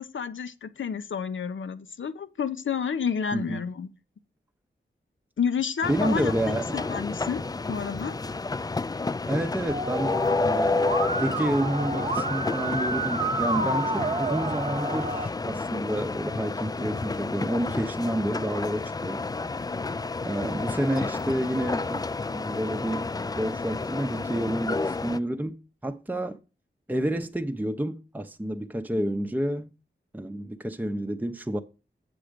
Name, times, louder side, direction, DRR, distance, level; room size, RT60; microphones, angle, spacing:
voice 1, 0.0-3.9 5.4-8.2, left 6 dB, 80° left, 0.7 m, -30 dB
sound 1, 5.8-25.2, left 3 dB, 20° left, 0.3 m, -30 dB
voice 2, 5.9-6.9 9.3-19.3 20.2-22.0 22.3-23.1 23.4-26.4 26.9-29.7 30.1-31.6, right 1 dB, 10° right, 0.7 m, -29 dB
Musical instrument, 9.7-15.3, right 2 dB, 35° right, 0.9 m, -30 dB
7.6 x 6.2 x 5.1 m
wide cardioid pair, 60°, 20 cm